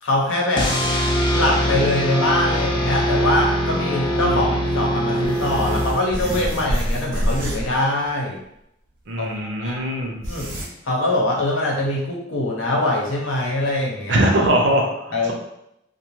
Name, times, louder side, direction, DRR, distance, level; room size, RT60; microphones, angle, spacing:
voice 1, 0.0-0.7 1.3-8.4 9.2-9.9 10.2-10.5 10.9-14.3 15.1-15.3, left 1 dB, 85° left, -2 dB, 0.8 m, -23 dB
sound 1, 0.6-6.4, equal, 25° left, 0.4 m, -22 dB
sound 2, 3.3-3.4 3.7-3.8 5.2-7.8 8.0-8.1 9.4-9.5 10.0-10.6, equal, 85° right, 0.9 m, -27 dB
voice 2, 4.2-4.6 9.1-10.2 14.1-15.3, right 1 dB, 65° right, 0 dB, 0.6 m, -21 dB
2.6 x 2.2 x 3.0 m, 0.79 s
head